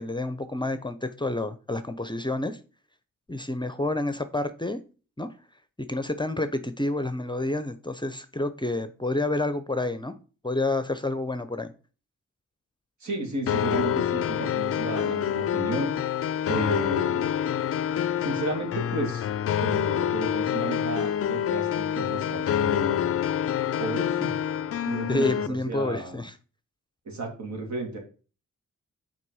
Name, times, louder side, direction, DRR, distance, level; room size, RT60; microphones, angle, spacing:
voice 1, 0.0-2.6 3.3-4.8 5.2-5.3 5.9-10.1 10.4-11.7 25.1-26.3, left 2 dB, 15° left, 0.7 m, -29 dB
voice 2, 13.0-15.9 16.5-17.3 18.2-19.3 19.6-23.1 23.8-24.4 24.9-26.2 27.1-28.0, right 2 dB, 65° right, 2.6 m, -33 dB
sound 1, 13.5-25.5, left 9 dB, 50° left, 0.4 m, -27 dB
5.9 x 4.3 x 4.8 m
cardioid pair, 50°, 30 cm